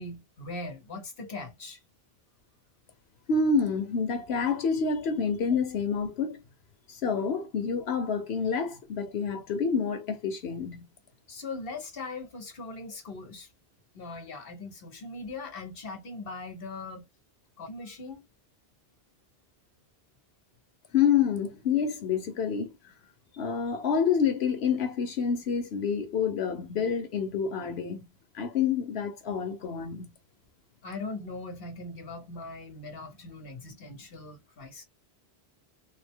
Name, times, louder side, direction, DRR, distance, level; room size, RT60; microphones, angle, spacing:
voice 1, 0.0-1.8 11.3-13.5 13.9-17.1 17.6-18.3 30.8-34.8, left 3 dB, 65° left, 1.2 m, -40 dB
voice 2, 3.3-6.4 6.9-10.9 20.9-22.7 23.3-28.1 28.3-30.1, left 6 dB, 85° left, 1.1 m, -28 dB
3.7 x 2.0 x 3.5 m
omnidirectional pair, 1.0 m